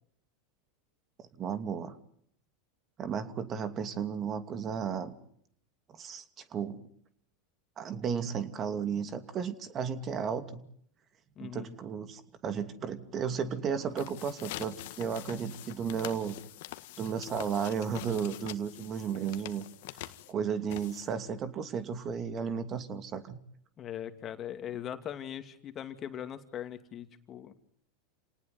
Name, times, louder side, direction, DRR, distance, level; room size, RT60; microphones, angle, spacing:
voice 1, 1.2-2.0 3.0-5.1 5.9-6.2 6.5-6.8 7.8-10.6 11.4-16.4 17.0-19.7 20.0-23.4, right 7 dB, 35° right, 10 dB, 2.7 m, -34 dB
voice 2, 11.4-11.8 23.8-27.5, left 10 dB, 35° left, 8 dB, 2.6 m, -40 dB
sound 1, 13.8-21.3, left 16 dB, 70° left, 1.7 m, -45 dB
28.5 x 19.0 x 9.5 m, 0.67 s
hypercardioid pair, 100°, 0 cm